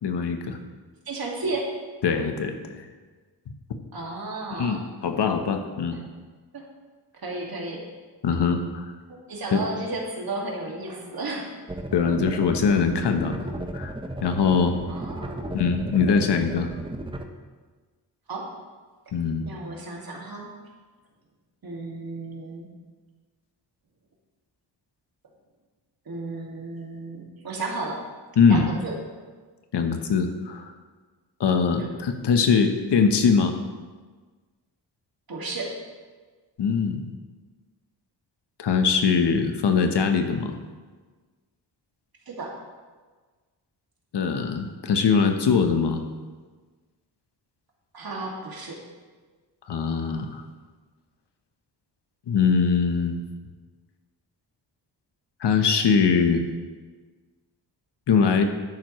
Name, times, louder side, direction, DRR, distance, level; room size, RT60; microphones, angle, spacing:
voice 1, 0.0-0.6 2.0-2.9 4.5-6.0 8.2-8.9 9.5-9.6 11.9-14.0 14.2-14.8 15.5-16.7 19.1-19.5 28.4-28.7 29.7-30.7 31.4-33.6 36.6-37.1 38.6-40.6 44.1-46.0 49.7-50.4 52.3-53.2 55.4-56.4 58.1-58.4, left 5 dB, 65° left, 6 dB, 1.1 m, -22 dB
voice 2, 1.1-1.7 3.9-4.9 6.5-6.7 7.2-7.8 9.1-11.5 14.9-15.5 18.3-18.5 19.5-20.5 21.6-22.7 26.1-28.0 28.5-28.9 35.3-35.7 42.3-42.6 47.9-48.8, right 2 dB, 55° right, -1 dB, 2.2 m, -33 dB
sound 1, 11.7-17.2, right 1 dB, 10° right, 0.8 m, -35 dB
11.0 x 9.0 x 3.1 m, 1.4 s
cardioid pair, 75°, 44 cm